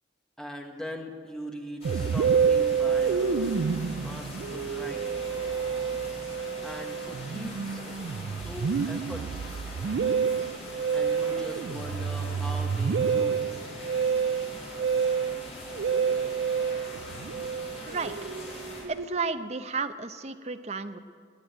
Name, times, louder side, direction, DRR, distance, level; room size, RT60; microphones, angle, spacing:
voice 1, 0.4-3.5 3.9-5.2 6.6-7.8 8.3-9.7 10.9-13.5, equal, 5° left, 2 dB, 1.4 m, -41 dB
sound 1, 1.8-18.8, left 1 dB, 40° left, 5.7 m, -42 dB
Musical instrument, 1.8-19.4, right 6 dB, 85° right, 0.4 m, -28 dB
voice 2, 18.9-21.0, right 4 dB, 35° right, 9 dB, 0.7 m, -32 dB
18.5 x 7.8 x 9.2 m, 2.1 s
head